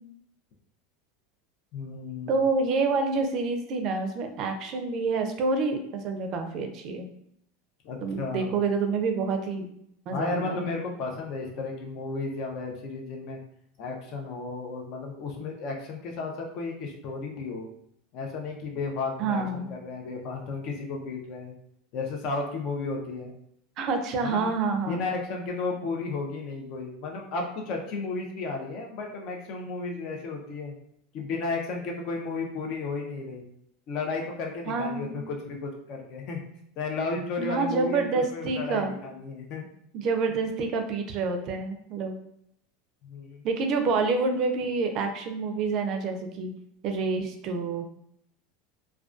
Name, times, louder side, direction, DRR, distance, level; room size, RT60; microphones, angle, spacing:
voice 1, 1.7-2.4 7.8-8.5 10.1-13.4 13.8-17.7 18.1-21.5 21.9-23.3 24.2-24.5 24.9-30.7 31.1-33.5 33.9-36.4 36.8-39.6 43.0-43.4, left 3 dB, 50° left, 1 dB, 0.5 m, -33 dB
voice 2, 2.3-7.1 8.0-9.7 10.1-10.7 19.2-19.7 23.8-25.0 34.7-35.2 37.4-38.9 39.9-42.2 43.4-46.5 46.8-47.8, right 4 dB, 45° right, 5 dB, 0.4 m, -28 dB
2.3 x 2.2 x 2.4 m, 0.72 s
supercardioid pair, 125°, 0 cm